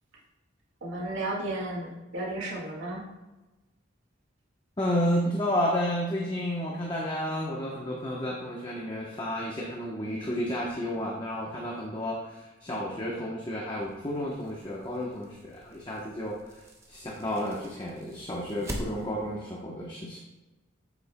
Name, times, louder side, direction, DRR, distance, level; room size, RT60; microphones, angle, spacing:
voice 1, 0.8-3.1, right 2 dB, 70° right, -3 dB, 1.8 m, -33 dB
voice 2, 4.8-16.3 16.9-20.2, equal, 25° left, -3 dB, 0.9 m, -31 dB
sound 1, 13.8-19.4, equal, 15° right, 1.0 m, -44 dB
8.6 x 8.0 x 2.2 m, 1.1 s
head